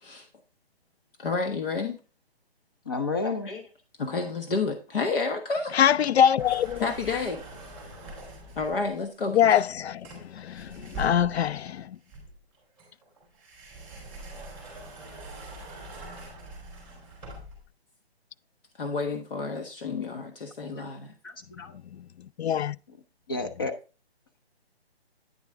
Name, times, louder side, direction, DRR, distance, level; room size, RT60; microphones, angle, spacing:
voice 1, 1.2-2.0 3.2-3.6 4.0-5.8 6.8-7.4 8.5-9.6 18.8-21.1, left 4 dB, 60° left, 1.3 m, -30 dB
voice 2, 2.9-3.5 21.2-21.7 22.9-23.0 23.3-23.7, left 3 dB, 20° left, 0.6 m, -31 dB
voice 3, 5.7-6.9 9.3-12.0 22.4-22.8, left 9 dB, 80° left, 0.5 m, -23 dB
sound 1, 6.4-8.9 10.0-11.6 12.1-17.7, right 1 dB, 5° left, 2.8 m, -43 dB
9.3 x 6.0 x 3.3 m
hypercardioid pair, 165°, 32 cm